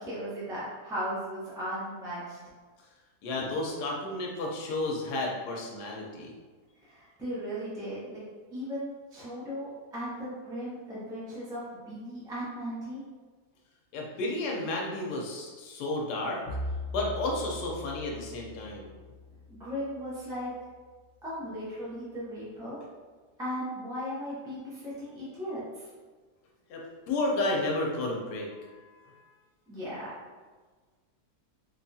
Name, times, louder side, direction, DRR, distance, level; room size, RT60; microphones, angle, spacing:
voice 1, 0.0-2.4 6.8-8.2 8.5-13.0 19.5-20.5 21.2-22.8 23.4-25.9 29.7-30.1, equal, 5° right, -9 dB, 0.3 m, -37 dB
voice 2, 3.2-6.3 13.9-16.4 16.9-18.9 26.7-28.5, left 2 dB, 90° left, -1 dB, 1.2 m, -32 dB
Bowed string instrument, 16.5-20.7, left 1 dB, 70° left, 1.4 m, -40 dB
3.4 x 2.3 x 2.6 m, 1.4 s
omnidirectional pair, 1.7 m